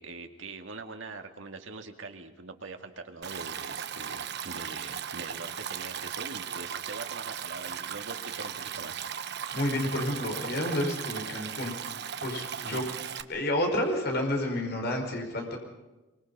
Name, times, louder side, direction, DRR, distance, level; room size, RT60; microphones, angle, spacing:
voice 1, 0.0-9.0 12.6-12.8, right 3 dB, 75° right, 5 dB, 2.3 m, -43 dB
Stream, 3.2-13.2, right 8 dB, 60° right, 1.0 m, -37 dB
voice 2, 9.5-11.7 12.2-12.8 13.3-15.6, left 1 dB, 55° left, 2 dB, 4.9 m, -30 dB
24.5 x 24.5 x 5.6 m, 1.1 s
head